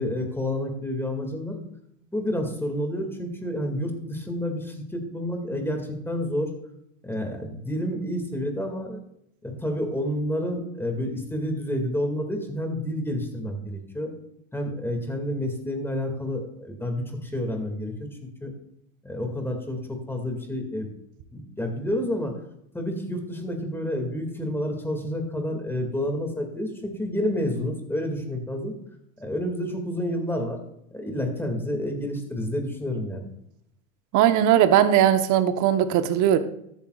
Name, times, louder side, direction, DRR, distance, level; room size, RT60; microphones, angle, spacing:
voice 1, 0.0-1.6 2.1-6.5 7.0-9.0 9.4-14.1 14.5-18.5 19.0-20.9 21.3-22.3 22.7-28.7 29.2-30.6 30.9-33.2, left 1 dB, 5° left, 4 dB, 2.0 m, -29 dB
voice 2, 34.1-36.4, right 10 dB, 45° right, 10 dB, 1.0 m, -19 dB
13.5 x 9.2 x 2.3 m, 0.76 s
hypercardioid pair, 100°, 40 cm